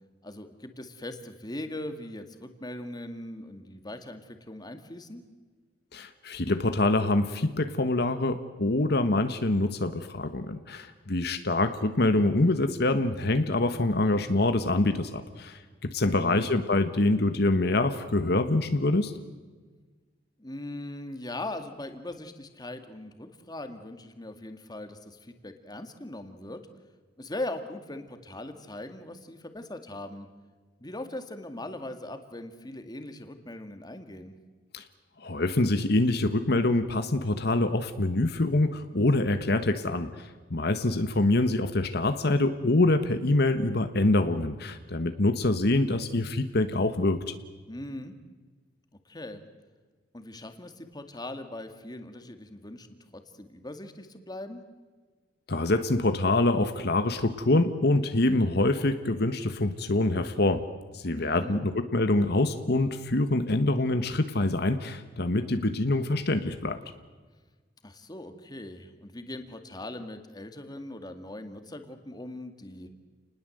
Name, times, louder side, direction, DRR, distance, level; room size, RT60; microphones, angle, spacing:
voice 1, 0.2-5.2 16.1-16.5 20.4-26.6 27.2-30.3 30.8-34.4 47.7-48.2 49.1-49.4 50.1-52.9 53.1-54.6 61.2-61.6 67.8-72.9, left 1 dB, 20° left, 7 dB, 2.1 m, -40 dB
voice 2, 5.9-19.1 34.7-34.8 35.2-47.3 55.5-60.6 60.9-66.8, left 2 dB, 60° left, 9 dB, 1.4 m, -25 dB
29.5 x 20.0 x 7.9 m, 1.4 s
head